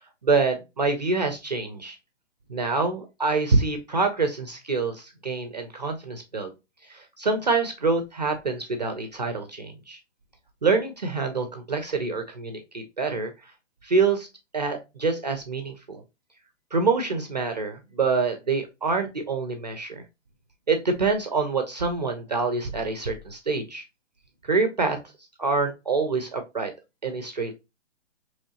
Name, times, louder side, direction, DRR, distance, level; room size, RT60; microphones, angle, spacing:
voice 1, 0.2-2.0 2.5-6.5 6.9-10.0 10.6-13.3 13.8-14.3 14.5-16.0 16.7-20.0 20.7-23.8 24.4-25.0 25.4-26.7 27.0-27.5, right 4 dB, 35° right, 6 dB, 0.4 m, -26 dB
3.6 x 3.1 x 2.7 m, 0.25 s
hypercardioid pair, 165°, 37 cm